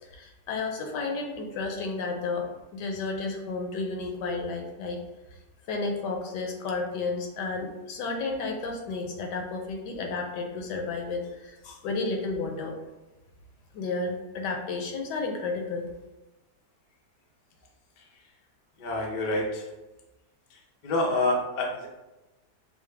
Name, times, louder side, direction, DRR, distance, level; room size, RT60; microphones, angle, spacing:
voice 1, 0.0-5.0 5.7-12.7 13.7-15.9, left 3 dB, 75° left, 2 dB, 1.3 m, -32 dB
voice 2, 18.8-19.7 20.5-21.9, left 2 dB, 55° left, -1 dB, 0.5 m, -28 dB
5.9 x 2.1 x 3.3 m, 1.0 s
omnidirectional pair, 1.9 m